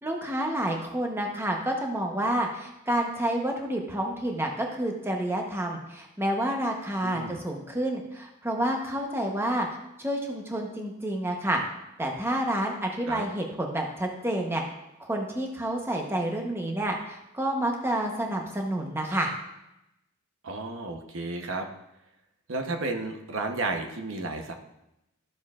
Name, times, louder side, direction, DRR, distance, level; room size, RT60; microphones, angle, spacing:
voice 1, 0.0-9.7 10.0-11.6 12.0-14.6 15.0-19.3, right 1 dB, 10° right, 1 dB, 0.9 m, -29 dB
voice 2, 7.0-7.4 13.0-13.2 20.4-21.7 22.5-24.5, right 2 dB, 65° right, 4 dB, 0.9 m, -32 dB
13.0 x 6.9 x 2.4 m, 0.89 s
head